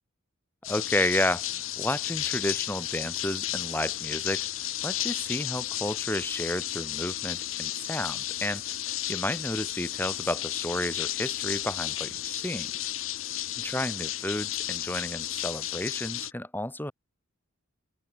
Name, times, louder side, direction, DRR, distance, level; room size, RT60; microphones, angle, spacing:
sound 1, 0.6-16.3, left 13 dB, 80° left, 2.1 m, -33 dB
voice 1, 0.7-1.5 1.8-4.5 4.8-12.7 13.6-16.9, left 1 dB, 10° left, 2.9 m, -31 dB
head